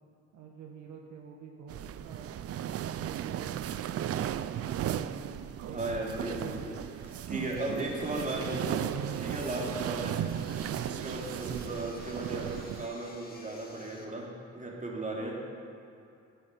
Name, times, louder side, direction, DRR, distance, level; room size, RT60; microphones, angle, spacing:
voice 1, 0.3-2.4 2.9-5.3 5.6-5.8, right 6 dB, 75° right, 1 dB, 1.2 m, -48 dB
sound 1, 1.7-12.9, right 10 dB, 50° right, 0.5 m, -35 dB
voice 2, 5.6-8.9 9.2-10.2 10.8-15.4, right 2 dB, 25° right, -3 dB, 2.7 m, -36 dB
sound 2, 6.3-14.0, left 2 dB, 30° left, 1.8 m, -54 dB
9.7 x 9.2 x 6.8 m, 2.6 s
cardioid pair, 90°, 30 cm